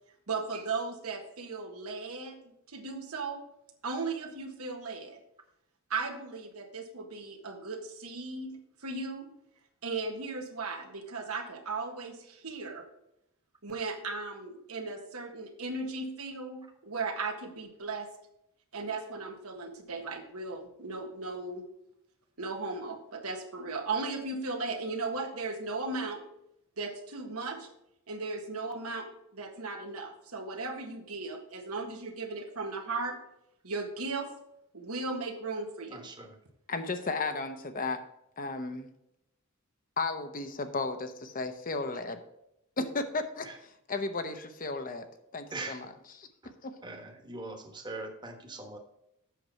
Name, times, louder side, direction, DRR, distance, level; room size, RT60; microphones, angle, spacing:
voice 1, 0.3-2.4 2.7-3.4 3.8-5.2 5.9-9.3 9.8-12.9 13.6-18.1 18.7-21.6 22.4-26.2 26.8-27.7 28.1-33.2 33.6-34.3 34.7-36.0, right 3 dB, 85° right, 4 dB, 1.5 m, -36 dB
voice 2, 35.9-36.4 43.4-43.6 45.5-45.9 46.4-46.5 46.8-48.8, right 2 dB, 20° right, 4 dB, 1.3 m, -41 dB
voice 3, 36.7-38.0 38.4-38.9 40.0-42.2 42.8-45.1 45.3-45.9 46.2-46.3 46.6-46.7, left 3 dB, 40° left, 8 dB, 0.8 m, -34 dB
8.0 x 6.1 x 5.4 m, 0.81 s
head